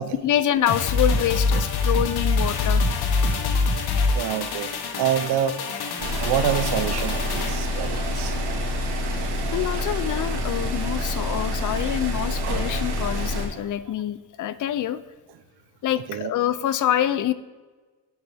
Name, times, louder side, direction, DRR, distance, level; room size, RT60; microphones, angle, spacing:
voice 1, 0.2-2.8 9.5-15.0 15.8-17.3, left 11 dB, 50° left, 15 dB, 0.5 m, -26 dB
sound 1, 0.7-9.2 9.5-9.7, left 3 dB, 75° left, 1.2 m, -25 dB
voice 2, 3.8-8.4 13.6-13.7 16.1-16.3, right 10 dB, 90° right, 12 dB, 0.7 m, -28 dB
sound 2, 6.0-13.5, left 1 dB, 70° right, 1.7 m, -27 dB
9.9 x 6.8 x 3.4 m, 1.3 s
cardioid pair, 155°, 39 cm